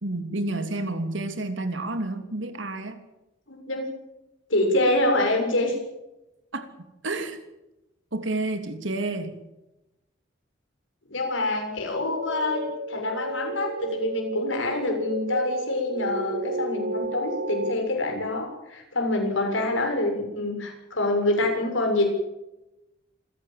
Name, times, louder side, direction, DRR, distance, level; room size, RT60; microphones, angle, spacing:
voice 1, 0.0-3.0 6.5-6.7 7.0-7.4 8.1-9.4, right 2 dB, 80° right, 3.0 m, -30 dB
voice 2, 3.5-3.9 4.5-5.8 11.1-22.1, left 2 dB, 85° left, 7.0 m, -26 dB
sound 1, 12.1-17.7, right 1 dB, 65° right, 2.2 m, -32 dB
27.0 x 16.0 x 7.7 m
head